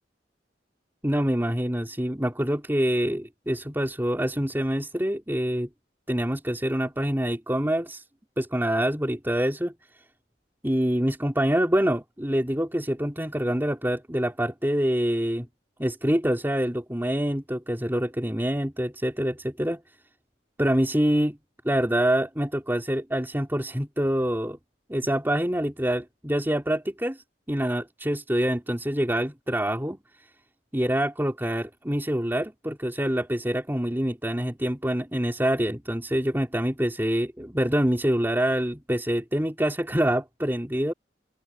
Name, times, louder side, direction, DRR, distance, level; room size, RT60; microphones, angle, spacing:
voice 1, 1.0-5.7 6.1-8.0 8.4-9.7 10.6-15.5 15.8-19.8 20.6-21.4 21.6-24.6 24.9-30.0 30.7-40.9, equal, 10° right, 3.4 m, -26 dB
open air
head